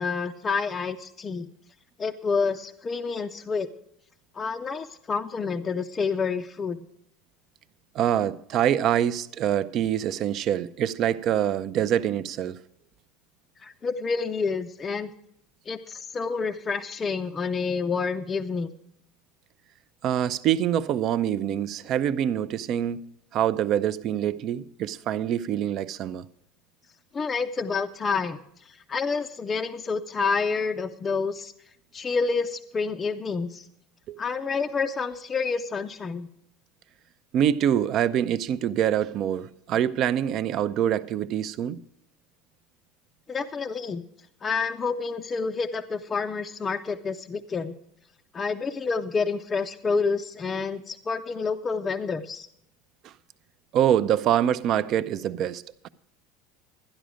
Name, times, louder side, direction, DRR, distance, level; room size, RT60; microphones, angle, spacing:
voice 1, 0.0-1.5 2.0-3.7 4.3-6.9 13.6-15.1 15.7-18.7 27.1-28.4 28.9-31.5 31.9-33.6 34.2-36.3 43.3-44.0 44.4-47.7 48.3-52.5, left 5 dB, 20° left, 0.5 m, -28 dB
voice 2, 7.9-12.6 20.0-23.0 23.3-26.2 34.1-34.2 37.3-41.8 53.0-53.1 53.7-55.9, right 10 dB, 40° right, 0.5 m, -25 dB
12.5 x 10.0 x 5.0 m
cardioid pair, 160°, 0 cm